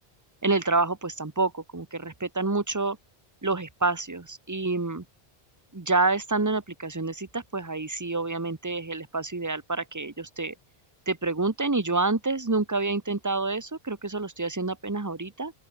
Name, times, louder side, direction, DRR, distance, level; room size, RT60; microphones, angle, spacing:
voice 1, 0.4-3.0 3.4-5.0 5.7-10.5 11.1-15.5, right 3 dB, 20° right, 1.1 m, -28 dB
open air
omnidirectional pair, 1.0 m